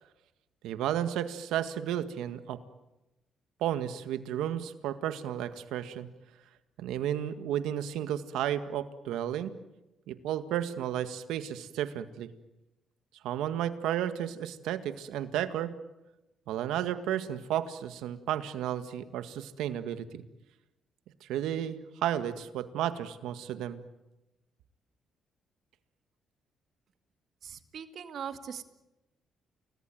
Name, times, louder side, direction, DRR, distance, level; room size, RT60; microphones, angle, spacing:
voice 1, 0.6-2.6 3.6-6.1 6.8-9.5 10.1-12.3 13.2-15.7 16.5-20.2 21.2-23.8, right 11 dB, 90° right, 10 dB, 1.9 m, -33 dB
voice 2, 27.4-28.6, right 8 dB, 60° right, 9 dB, 2.2 m, -40 dB
30.0 x 19.5 x 9.4 m, 0.98 s
cardioid pair, 90°, 0 cm